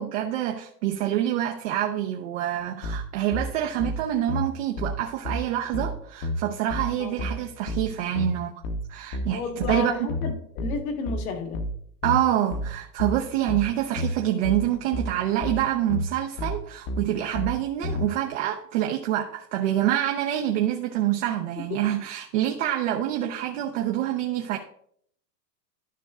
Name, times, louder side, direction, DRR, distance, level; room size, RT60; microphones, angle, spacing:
voice 1, 0.0-8.5 8.9-10.1 12.0-24.6, right 12 dB, 50° right, 0.8 m, -26 dB
sound 1, 2.8-18.1, left 1 dB, 45° left, 1.2 m, -31 dB
voice 2, 9.3-11.6, left 4 dB, 60° left, 1.6 m, -32 dB
12.5 x 5.3 x 2.4 m
hypercardioid pair, 145°, 48 cm